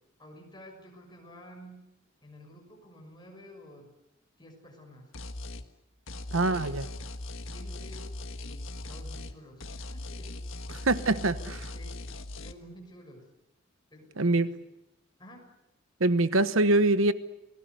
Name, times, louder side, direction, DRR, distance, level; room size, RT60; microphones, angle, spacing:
voice 1, 0.2-1.9 2.2-3.9 4.4-5.1 6.2-6.7 7.4-12.0 12.4-13.2 13.9-14.6 15.2-15.5, equal, 20° left, 2 dB, 6.4 m, -51 dB
sound 1, 5.1-5.7 6.1-9.4 9.6-12.5, left 2 dB, 75° left, 1.6 m, -39 dB
voice 2, 6.3-6.8 10.9-11.3 14.2-14.5 16.0-17.1, right 2 dB, 80° right, 13 dB, 1.1 m, -23 dB
29.0 x 19.0 x 8.2 m, 0.86 s
head